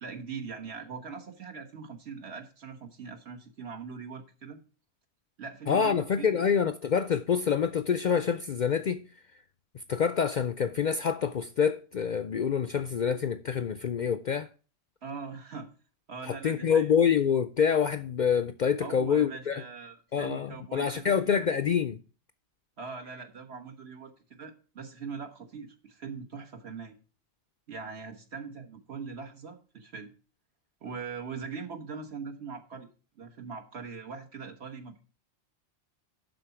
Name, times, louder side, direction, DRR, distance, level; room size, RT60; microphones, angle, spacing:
voice 1, 0.0-4.6 5.4-6.3 15.0-15.7 16.1-16.9 18.8-21.2 22.8-27.0 27.7-30.1 30.8-32.9 33.2-35.0, right 5 dB, 65° right, 1.6 m, -41 dB
voice 2, 5.7-9.0 9.9-14.5 16.2-19.6 20.1-22.0, left 7 dB, 55° left, 0.5 m, -26 dB
11.5 x 4.0 x 5.7 m
omnidirectional pair, 1.2 m